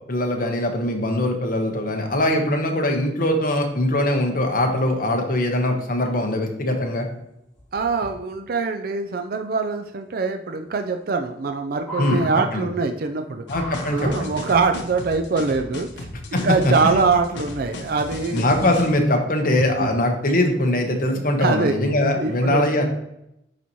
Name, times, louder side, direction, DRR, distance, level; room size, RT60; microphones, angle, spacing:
voice 1, 0.1-7.1 12.0-12.2 12.5-12.7 13.5-14.3 16.3-17.1 18.3-22.9, left 1 dB, 50° left, 3 dB, 1.1 m, -22 dB
sound 1, 7.5-8.1 9.7-9.8 11.0-11.5 11.8-13.0 13.5-14.5 15.5-15.6, left 2 dB, 5° left, 1.9 m, -37 dB
voice 2, 7.7-13.4 13.9-18.5 19.8-19.9 21.4-21.7 22.2-22.6, right 4 dB, 55° right, 5 dB, 0.4 m, -23 dB
sound 2, 13.5-18.9, left 2 dB, 75° left, 0.9 m, -35 dB
10.5 x 4.1 x 3.0 m, 0.82 s
head